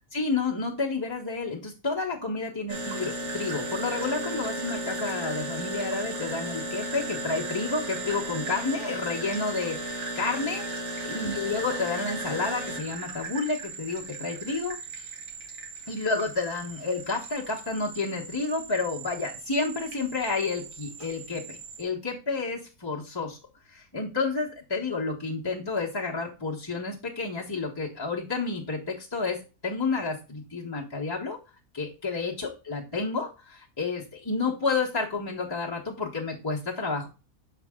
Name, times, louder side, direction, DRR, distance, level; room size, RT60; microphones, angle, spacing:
voice 1, 0.1-10.6 11.0-15.1 15.9-23.4 23.7-31.4 31.7-37.1, left 3 dB, 20° left, -4 dB, 0.9 m, -30 dB
sound 1, 2.7-21.8, right 2 dB, 60° right, 1.8 m, -36 dB
6.6 x 4.7 x 3.6 m, 0.31 s
omnidirectional pair, 1.6 m